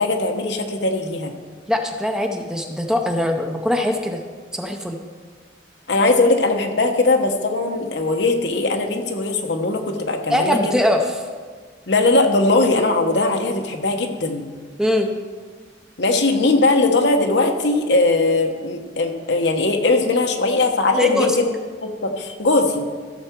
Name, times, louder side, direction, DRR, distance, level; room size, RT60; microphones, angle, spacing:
voice 1, 0.0-1.3 5.9-10.6 11.9-14.5 16.0-21.4 21.8-22.9, left 2 dB, 70° left, 4 dB, 1.1 m, -19 dB
voice 2, 1.7-4.2 4.5-5.0 10.3-11.3 14.8-15.1 21.0-21.4, left 1 dB, 5° right, 3 dB, 0.6 m, -21 dB
14.0 x 7.0 x 4.6 m, 1.5 s
head